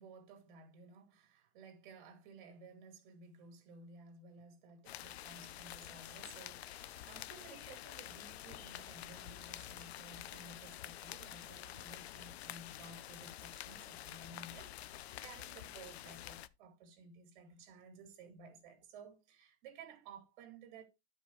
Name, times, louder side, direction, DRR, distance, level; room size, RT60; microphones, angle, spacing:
voice 1, 0.0-20.8, right 4 dB, 50° right, 2.4 m, -56 dB
sound 1, 4.8-16.5, left 13 dB, 80° left, 0.7 m, -48 dB
11.5 x 5.3 x 3.1 m
supercardioid pair, 155°, 31 cm